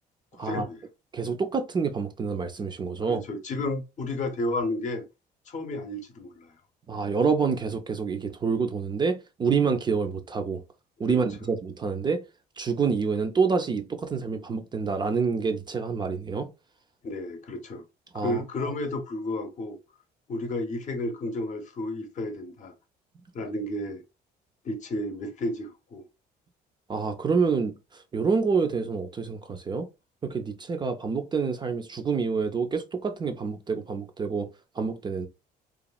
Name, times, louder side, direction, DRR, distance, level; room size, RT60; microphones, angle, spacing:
voice 1, 0.3-0.8 3.0-5.1 5.5-6.5 11.1-11.2 17.0-17.8 18.1-19.8 20.3-22.7 23.3-24.0 24.6-26.0, left 1 dB, 45° left, 0.7 m, -32 dB
voice 2, 1.1-3.2 6.9-10.6 11.0-12.2 12.6-16.5 18.1-18.7 26.9-29.9 30.2-34.5 34.8-35.3, right 5 dB, 25° right, 0.4 m, -27 dB
2.9 x 2.3 x 2.3 m
cardioid pair, 110°, 17 cm